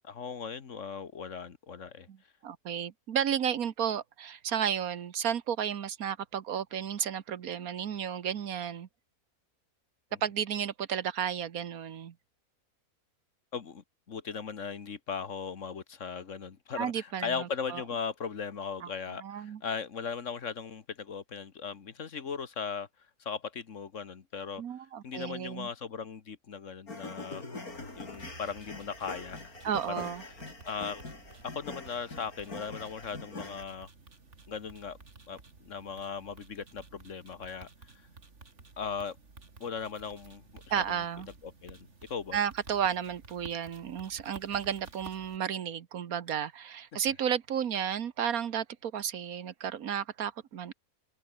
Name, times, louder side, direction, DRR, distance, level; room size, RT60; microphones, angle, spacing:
voice 1, 0.0-2.1 13.5-22.9 23.2-24.6 25.0-27.4 27.9-29.5 29.9-30.0 30.6-31.0 31.4-33.9 34.5-35.0 35.3-37.7 38.8-39.2 39.6-41.0 41.4-42.4, left 6 dB, 55° left, 1.7 m, -38 dB
voice 2, 2.4-8.9 10.2-12.1 16.8-17.8 18.8-18.9 19.2-19.6 24.6-25.7 29.6-30.2 40.7-41.3 42.3-50.7, right 8 dB, 75° right, 1.5 m, -33 dB
sound 1, 26.9-33.6, left 3 dB, 75° left, 5.1 m, -44 dB
sound 2, 27.7-45.4, right 3 dB, 50° right, 3.0 m, -54 dB
open air
omnidirectional pair, 1.6 m